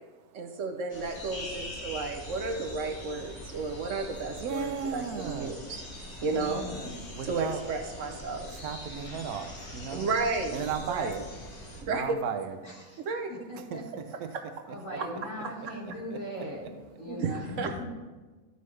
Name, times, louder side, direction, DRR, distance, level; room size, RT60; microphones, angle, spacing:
voice 1, 0.3-5.8 6.2-6.7 7.2-8.5 9.9-10.6 10.9-11.1 11.8-12.2 13.0-13.3 14.3-14.4 15.0-15.1 17.1-17.8, right 3 dB, 65° right, 5 dB, 0.9 m, -32 dB
sound 1, 0.9-11.8, left 1 dB, 75° left, 2.0 m, -43 dB
voice 2, 4.4-5.6 6.3-7.6 8.5-10.1 10.5-11.3 11.8-12.6 13.6-14.3, right 7 dB, 90° right, 8 dB, 1.2 m, -35 dB
voice 3, 6.2-7.3 8.0-8.2 12.6-13.8 14.7-17.8, left 1 dB, 60° left, -3 dB, 2.2 m, -40 dB
12.5 x 5.4 x 3.2 m, 1.3 s
omnidirectional pair, 1.5 m